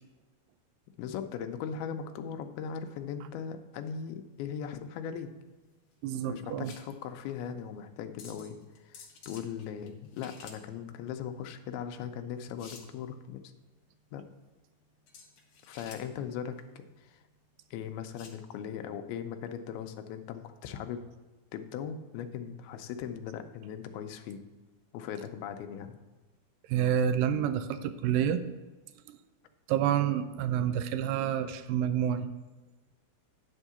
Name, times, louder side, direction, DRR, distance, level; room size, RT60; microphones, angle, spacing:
voice 1, 1.0-5.3 6.3-8.6 8.8-9.0 9.3-13.4 14.1-14.2 15.7-17.2 17.7-21.0 21.5-24.4 24.9-26.0, left 8 dB, 85° left, 7 dB, 2.6 m, -39 dB
sound 1, 3.7-18.4, left 5 dB, 65° left, 1.6 m, -55 dB
voice 2, 6.0-6.7 26.7-28.4 29.1-29.2 29.7-32.3, right 9 dB, 80° right, 10 dB, 2.0 m, -28 dB
10.5 x 3.7 x 6.8 m, 1.2 s
omnidirectional pair, 4.3 m